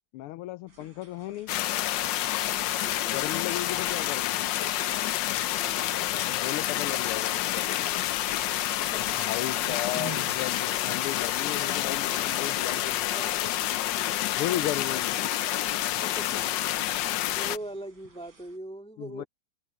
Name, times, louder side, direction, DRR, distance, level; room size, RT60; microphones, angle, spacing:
voice 1, 0.1-1.5 3.1-4.5 6.3-8.1 8.9-13.1 14.4-15.2 19.0-19.3, left 15 dB, 90° left, 1.5 m, -35 dB
sound 1, 0.7-18.6, right 3 dB, 50° right, 4.1 m, -51 dB
sound 2, 1.5-17.6, left 13 dB, 70° left, 1.2 m, -28 dB
voice 2, 2.8-3.2 5.6-5.9 8.8-9.2 13.1-13.4 14.5-14.6 16.0-16.6 17.3-19.3, right 1 dB, 5° left, 2.2 m, -41 dB
open air
omnidirectional pair, 2.4 m